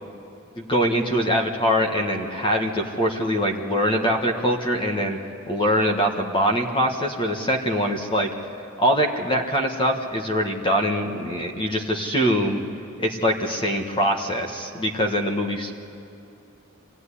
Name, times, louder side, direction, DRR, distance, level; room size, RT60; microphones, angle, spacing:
voice 1, 0.6-5.2 5.5-8.3 8.8-12.6 13.0-15.8, equal, 25° left, 2 dB, 1.4 m, -23 dB
25.5 x 16.0 x 10.0 m, 2.7 s
head